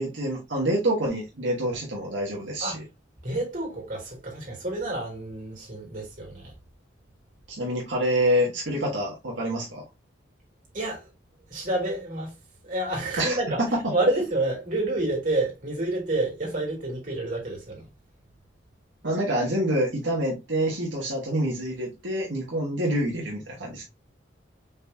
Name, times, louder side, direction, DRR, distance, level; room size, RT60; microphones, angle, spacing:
voice 1, 0.0-2.8 7.5-9.8 13.2-13.7 19.0-23.8, right 1 dB, 80° right, 1.6 m, -27 dB
voice 2, 3.2-6.5 10.7-11.1 11.5-12.3 12.6-13.6 13.9-17.8, right 2 dB, 45° right, 2.9 m, -29 dB
5.3 x 3.7 x 2.7 m
head